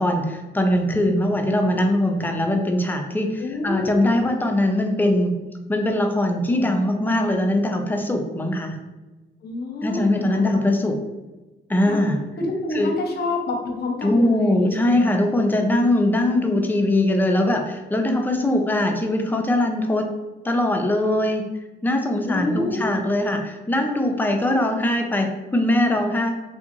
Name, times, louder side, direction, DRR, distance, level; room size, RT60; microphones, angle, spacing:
voice 1, 0.0-5.3 5.7-8.8 9.8-11.0 11.7-12.2 12.7-12.9 14.0-20.1 20.4-21.4 21.8-26.3, left 1 dB, 10° left, 3 dB, 0.4 m, -21 dB
voice 2, 3.4-4.0 9.4-10.6 11.8-12.1 12.4-15.1 22.2-22.9, left 3 dB, 55° left, 2 dB, 0.6 m, -28 dB
2.6 x 2.4 x 2.9 m, 1.2 s
cardioid pair, 90°, 20 cm